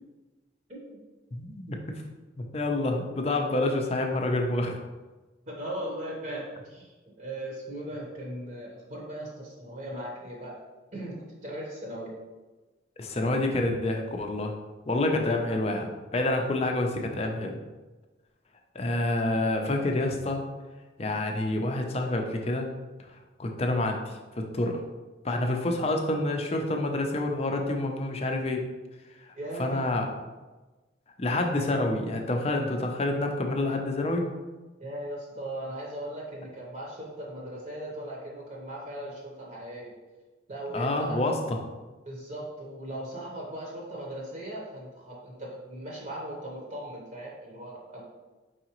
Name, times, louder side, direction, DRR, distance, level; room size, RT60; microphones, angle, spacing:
voice 1, 1.3-2.0 2.4-4.8 13.0-14.5 14.9-17.6 18.7-20.4 21.0-22.7 23.4-24.8 25.2-28.6 29.6-30.1 31.2-34.3 40.7-41.6, left 2 dB, 35° left, 3 dB, 0.5 m, -28 dB
voice 2, 5.5-6.9 7.2-10.5 10.9-12.1 29.4-29.9 34.8-39.9 40.5-41.2 42.0-48.0, right 1 dB, 40° right, -3 dB, 0.9 m, -38 dB
4.8 x 3.7 x 3.0 m, 1.2 s
head